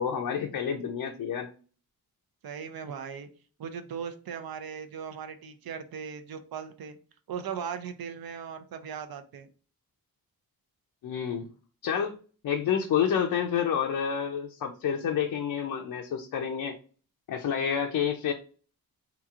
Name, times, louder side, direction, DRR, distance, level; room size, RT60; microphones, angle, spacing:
voice 1, 0.0-1.5 11.0-11.5 11.8-12.2 12.4-16.8 17.3-18.3, left 8 dB, 65° left, 3 dB, 0.5 m, -29 dB
voice 2, 2.4-3.3 3.6-7.0 7.3-9.5, right 7 dB, 70° right, 9 dB, 0.6 m, -38 dB
3.7 x 2.8 x 2.4 m, 0.38 s
wide cardioid pair, 145°, 37 cm